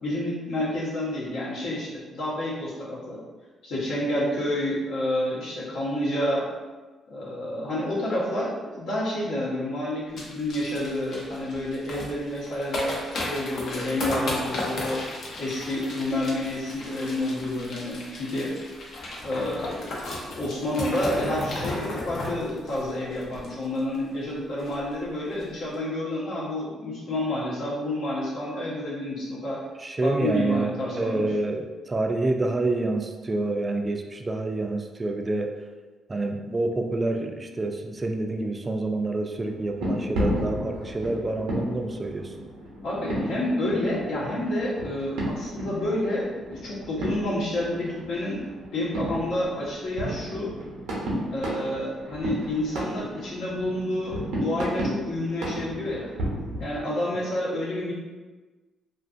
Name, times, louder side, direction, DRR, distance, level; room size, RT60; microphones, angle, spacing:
voice 1, 0.0-3.2 3.6-6.5 7.1-15.0 15.4-18.5 19.2-19.9 20.3-29.6 30.0-31.3 42.8-48.4 48.7-50.5 51.3-56.1 56.6-57.9, left 1 dB, 80° left, -7 dB, 0.9 m, -29 dB
sound 1, 10.2-24.0 24.2-24.3 24.6-24.9 25.3-25.4, left 1 dB, 65° left, 0.6 m, -35 dB
voice 2, 29.8-35.5 36.1-42.3, right 2 dB, 25° right, 4 dB, 0.3 m, -27 dB
sound 2, 39.4-56.8, equal, 90° right, 0.7 m, -33 dB
2.5 x 2.4 x 2.4 m, 1.3 s
cardioid pair, 90°, 0 cm